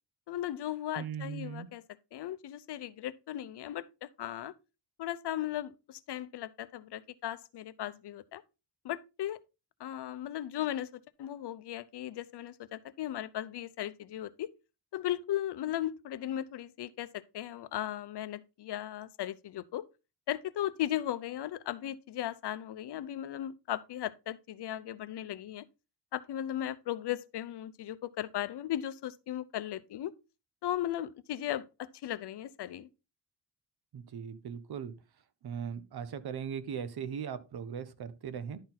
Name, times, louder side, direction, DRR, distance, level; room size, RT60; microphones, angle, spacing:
voice 1, 0.3-1.8 2.1-4.5 5.0-8.4 8.8-9.4 9.8-10.9 11.2-14.5 14.9-19.8 20.3-25.6 26.1-30.1 30.6-32.9, left 12 dB, 70° left, 0.7 m, -37 dB
voice 2, 1.0-1.7 33.9-34.9 35.4-38.6, right 7 dB, 65° right, 0.9 m, -39 dB
11.5 x 4.5 x 3.9 m
wide cardioid pair, 145°, 41 cm